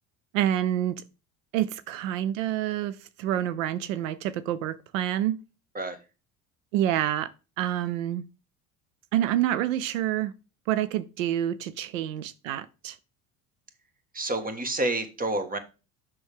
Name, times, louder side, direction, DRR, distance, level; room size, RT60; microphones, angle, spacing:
voice 1, 0.3-1.0 1.5-5.4 6.7-7.3 7.6-8.2 9.1-10.3 10.7-13.0, right 12 dB, 90° right, 0.6 m, -27 dB
voice 2, 14.1-15.6, right 2 dB, 20° right, 1.6 m, -29 dB
6.3 x 6.1 x 3.6 m
supercardioid pair, 85°, 38 cm